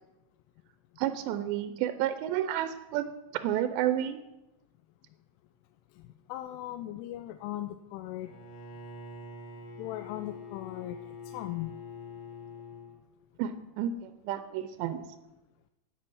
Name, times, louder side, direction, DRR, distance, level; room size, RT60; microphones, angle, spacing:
voice 1, 1.0-3.1 3.3-4.2 13.4-15.1, right 11 dB, 80° right, 10 dB, 2.6 m, -31 dB
voice 2, 6.0-8.3 9.8-11.0 11.2-11.7, left 14 dB, 90° left, 8 dB, 3.1 m, -38 dB
Bowed string instrument, 8.2-13.0, left 3 dB, 65° left, 2.8 m, -45 dB
12.5 x 9.0 x 6.2 m, 0.98 s
omnidirectional pair, 5.5 m